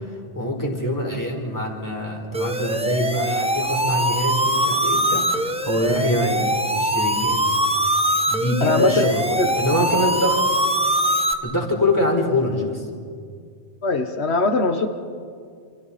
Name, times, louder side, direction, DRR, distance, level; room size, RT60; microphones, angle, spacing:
voice 1, 0.3-7.4 8.3-10.4 11.4-12.8, left 1 dB, 15° left, -1 dB, 4.0 m, -24 dB
sound 1, 2.3-11.3, right 1 dB, 5° right, 0.9 m, -22 dB
voice 2, 8.6-9.1 9.4-9.5 13.8-14.9, left 3 dB, 90° left, 6 dB, 1.5 m, -21 dB
28.5 x 28.0 x 4.2 m, 2.2 s
omnidirectional pair, 1.1 m